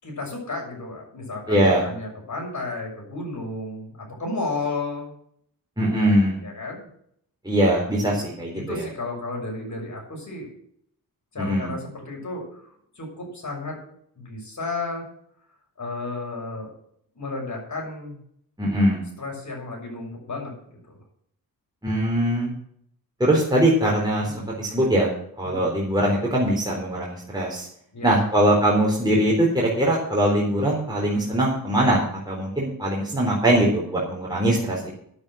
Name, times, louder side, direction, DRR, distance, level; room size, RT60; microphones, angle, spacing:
voice 1, 0.0-5.1 6.4-6.9 8.1-8.2 8.5-10.5 11.3-13.8 14.2-15.1 15.8-16.7 17.1-18.2 19.2-20.5 20.9-21.0 24.2-24.4 25.4-25.6 27.9-28.1, left 3 dB, 50° left, 0 dB, 6.3 m, -33 dB
voice 2, 1.5-1.8 5.8-6.4 7.4-8.8 11.4-11.7 18.6-19.0 21.8-22.5 23.2-25.1 25.4-27.7 28.0-32.0 32.3-34.9, right 1 dB, 10° right, -4 dB, 4.0 m, -21 dB
9.8 x 8.8 x 7.5 m, 0.69 s
cardioid pair, 75°, 36 cm